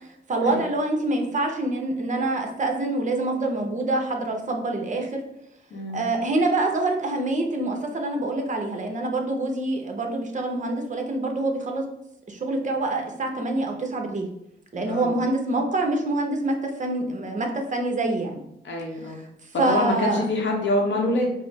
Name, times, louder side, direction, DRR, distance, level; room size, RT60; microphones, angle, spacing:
voice 1, 0.0-5.2 5.9-11.9 12.3-14.3 14.7-18.4 19.0-19.1 19.6-20.2, right 2 dB, 40° right, 3 dB, 0.8 m, -26 dB
voice 2, 5.7-6.1 14.9-15.1 18.6-19.2 19.5-21.3, left 2 dB, 80° left, 1 dB, 0.9 m, -25 dB
4.7 x 2.0 x 4.6 m, 0.81 s
wide cardioid pair, 115°, 19 cm